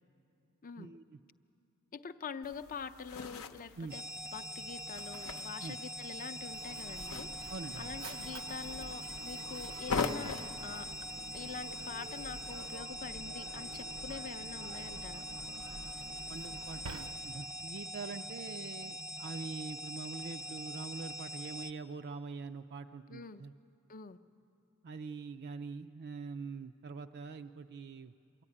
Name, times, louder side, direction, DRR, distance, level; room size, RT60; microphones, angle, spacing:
voice 1, 0.8-1.2 3.8-3.9 5.6-5.8 7.5-7.9 16.3-23.5 24.8-28.1, right 4 dB, 50° right, 8 dB, 0.4 m, -44 dB
voice 2, 1.9-4.0 4.3-10.9 11.3-15.3 23.1-23.4 23.9-24.2, left 5 dB, 40° left, 10 dB, 0.6 m, -45 dB
sound 1, 2.4-12.8, left 4 dB, 70° left, 0.8 m, -43 dB
sound 2, 3.9-21.7, equal, 10° right, 0.6 m, -43 dB
Mechanisms, 6.4-17.6, right 2 dB, 80° right, 0.8 m, -49 dB
22.5 x 15.0 x 9.8 m, 2.7 s
head